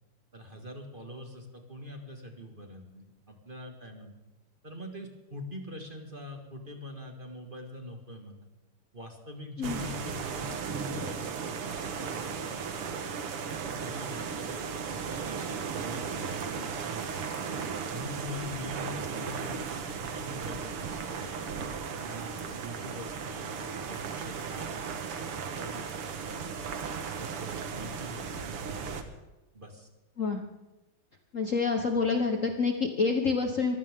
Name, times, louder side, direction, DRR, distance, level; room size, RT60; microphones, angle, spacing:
voice 1, 0.3-4.2 4.6-8.5 8.9-13.1 13.7-17.3 17.9-21.4 21.9-26.5 27.2-29.0 29.5-29.9, left 1 dB, 25° right, 3 dB, 2.2 m, -44 dB
sound 1, 9.6-29.0, right 6 dB, 80° right, 2.4 m, -36 dB
voice 2, 31.3-33.8, left 4 dB, 40° left, 4 dB, 1.4 m, -27 dB
24.0 x 16.0 x 3.7 m, 1.0 s
omnidirectional pair, 2.4 m